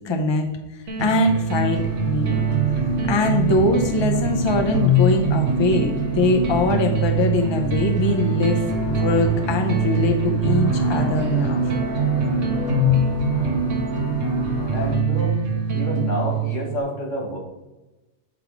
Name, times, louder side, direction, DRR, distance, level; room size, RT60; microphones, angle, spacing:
voice 1, 0.0-0.5 1.0-2.4 3.1-11.6, left 2 dB, 30° left, 3 dB, 0.6 m, -22 dB
sound 1, 0.9-16.8, right 3 dB, 85° right, 1.3 m, -23 dB
sound 2, 1.7-15.0, left 1 dB, 65° left, 1.7 m, -35 dB
voice 2, 14.7-15.4 15.7-17.4, left 1 dB, 85° left, 0 dB, 2.0 m, -28 dB
7.9 x 3.6 x 4.8 m, 1.0 s
omnidirectional pair, 1.3 m